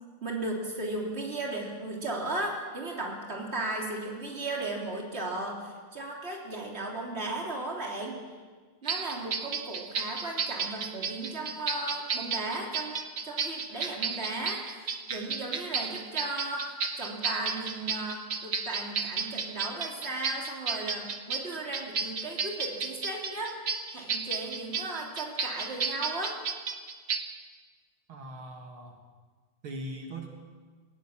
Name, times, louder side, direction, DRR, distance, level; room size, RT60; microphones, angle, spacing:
voice 1, 0.2-8.2 8.8-23.6 23.9-26.4, right 2 dB, 30° right, -1 dB, 3.6 m, -36 dB
sound 1, 8.9-27.2, right 5 dB, 45° right, 1.4 m, -33 dB
voice 2, 28.1-29.0 29.6-30.3, right 1 dB, 80° right, 2 dB, 2.9 m, -40 dB
19.5 x 19.0 x 7.4 m, 1.5 s
omnidirectional pair, 2.3 m